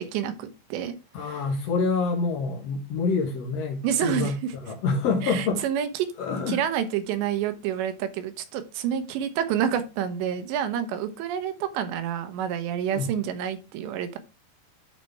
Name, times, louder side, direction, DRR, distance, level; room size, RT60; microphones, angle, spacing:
voice 1, 0.0-1.0 1.3-1.4 3.8-4.3 5.2-6.1 6.5-14.2, right 9 dB, 85° right, 3.2 m, -28 dB
voice 2, 1.1-5.6 6.2-6.6 12.9-13.1, left 4 dB, 65° left, 1.6 m, -27 dB
11.0 x 4.2 x 3.4 m
omnidirectional pair, 4.9 m